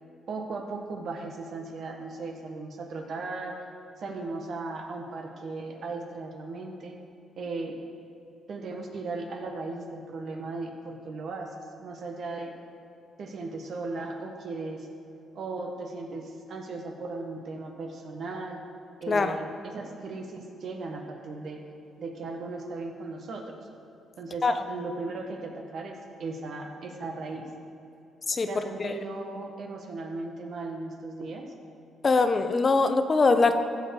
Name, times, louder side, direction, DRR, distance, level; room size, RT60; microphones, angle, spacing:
voice 1, 0.3-3.5 4.0-7.0 7.4-7.8 8.5-12.5 13.2-14.9 15.3-18.6 19.0-21.6 22.0-23.6 24.2-27.5 28.5-31.4, right 3 dB, 60° right, 2 dB, 1.6 m, -37 dB
voice 2, 19.1-19.4 24.4-24.6 28.3-28.9 32.0-33.6, left 3 dB, 35° left, 8 dB, 0.8 m, -23 dB
15.0 x 7.2 x 4.8 m, 2.7 s
cardioid pair, 90°, 0 cm